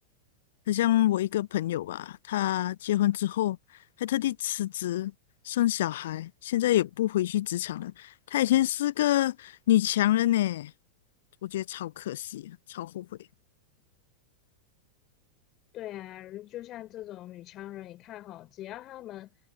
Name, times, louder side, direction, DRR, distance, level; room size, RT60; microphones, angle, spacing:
voice 1, 0.7-3.6 4.0-5.1 5.5-10.7 11.4-13.1, left 14 dB, 55° left, 0.7 m, -27 dB
voice 2, 15.7-19.3, left 14 dB, 35° left, 4.6 m, -42 dB
figure-of-eight pair, 90°, 0 cm